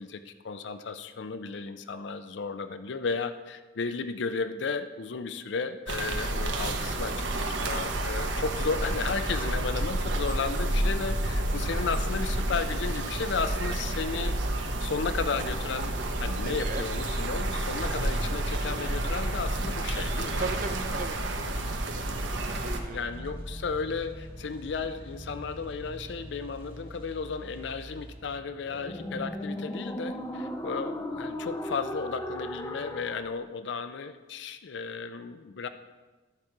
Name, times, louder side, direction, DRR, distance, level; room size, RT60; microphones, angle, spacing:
voice 1, 0.0-15.9 16.2-20.4 22.9-35.7, left 5 dB, 65° left, 10 dB, 0.5 m, -34 dB
sound 1, 5.9-22.8, right 1 dB, 80° right, 1.1 m, -30 dB
sound 2, 14.0-28.2, equal, 30° right, 1.3 m, -47 dB
voice 2, 16.4-16.8 20.4-21.2 21.9-23.3, right 4 dB, 45° right, 9 dB, 0.6 m, -38 dB
sound 3, 20.2-33.3, left 1 dB, 15° left, 0.6 m, -40 dB
13.5 x 4.9 x 5.9 m, 1.3 s
head